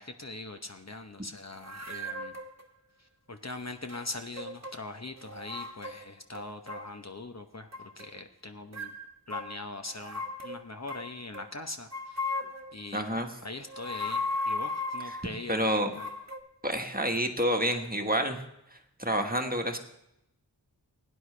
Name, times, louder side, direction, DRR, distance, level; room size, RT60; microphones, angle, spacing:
voice 1, 0.0-2.3 3.0-8.9 9.3-12.4 12.7-16.1, left 2 dB, 40° left, 6 dB, 0.9 m, -42 dB
sound 1, 1.6-2.6 3.8-4.8 5.1-6.1 6.3-7.0 7.7-8.2 8.7-11.5 11.9-12.8 13.6-15.4 15.9-16.4, left 2 dB, 40° right, 1.2 m, -36 dB
voice 2, 12.9-13.3 15.5-15.9 16.6-18.4 19.0-19.8, equal, 20° right, 5 dB, 1.3 m, -28 dB
17.0 x 9.9 x 3.3 m, 0.82 s
wide cardioid pair, 55°, 41 cm